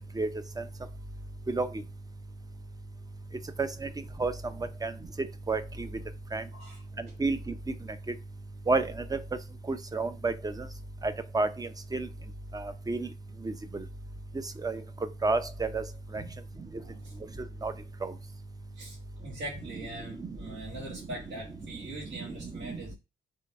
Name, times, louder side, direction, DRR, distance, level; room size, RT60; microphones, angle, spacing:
voice 1, 3.6-3.9 4.2-4.3 4.8-4.9 5.5-5.9 6.3-6.4 7.0-7.5 8.7-9.2 9.7-10.7 11.0-12.1 12.5-13.1 13.4-13.5 14.6-14.8 15.2-15.8 16.1-16.2 17.6-17.7 18.0-18.1 20.2-20.4 22.2-22.4 22.6-23.0, right 3 dB, 20° right, 0.6 m, -30 dB
voice 2, 16.8-17.1 18.8-22.9, right 1 dB, 70° right, 1.7 m, -42 dB
3.7 x 3.3 x 4.3 m
cardioid pair, 90°, 20 cm